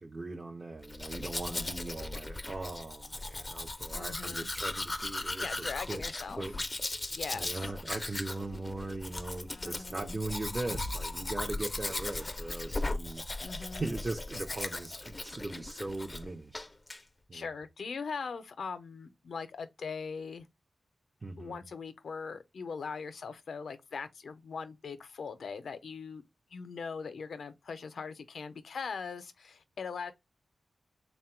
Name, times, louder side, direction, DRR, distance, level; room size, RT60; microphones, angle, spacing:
voice 1, 0.0-6.0 6.3-6.6 6.8-13.5 13.8-16.7 17.3-17.5 21.2-21.6, right 2 dB, 35° right, 0.5 m, -40 dB
Domestic sounds home sounds, 0.8-16.3 16.5-17.0, left 2 dB, 25° left, 0.4 m, -38 dB
voice 2, 1.4-1.8 3.9-4.5 5.4-6.5 7.1-7.7 9.5-10.2 13.4-13.9 17.3-20.5 21.4-26.2 26.5-30.1, left 5 dB, 80° left, 0.5 m, -41 dB
sound 1, 10.7-14.6, equal, 70° right, 0.7 m, -48 dB
3.5 x 2.1 x 4.3 m
cardioid pair, 75°, 0 cm